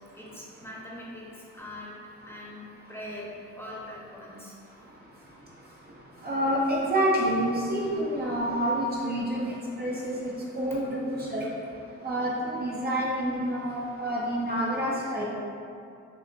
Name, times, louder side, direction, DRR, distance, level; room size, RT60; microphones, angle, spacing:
voice 1, 0.1-1.9 2.2-3.3 3.6-4.5 11.2-11.3, left 1 dB, 10° left, -6 dB, 1.0 m, -42 dB
voice 2, 6.2-10.3 10.6-11.4 12.0-15.2, right 1 dB, 30° right, -6 dB, 0.8 m, -28 dB
6.3 x 2.5 x 2.8 m, 2.6 s
cardioid pair, 90°, 30 cm